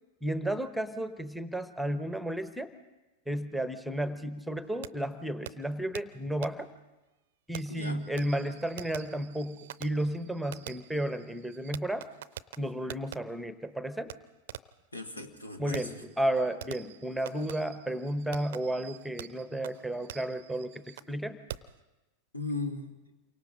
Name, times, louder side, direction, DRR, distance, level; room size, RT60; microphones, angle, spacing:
voice 1, 0.2-2.7 3.3-6.7 7.5-12.1 12.6-14.1 15.6-21.4, right 1 dB, ahead, 11 dB, 1.1 m, -33 dB
Fireworks, 4.8-4.9 5.5-5.6 5.9-6.0 6.4-6.5 7.5-13.2 14.1-14.2 14.5-14.8 15.7-21.1 21.5-21.8, right 12 dB, 55° right, 0.6 m, -46 dB
voice 2, 14.9-16.0 22.3-23.0, left 3 dB, 80° left, 7 dB, 1.7 m, -37 dB
28.5 x 24.0 x 3.9 m, 1.1 s
figure-of-eight pair, 90°, 0 cm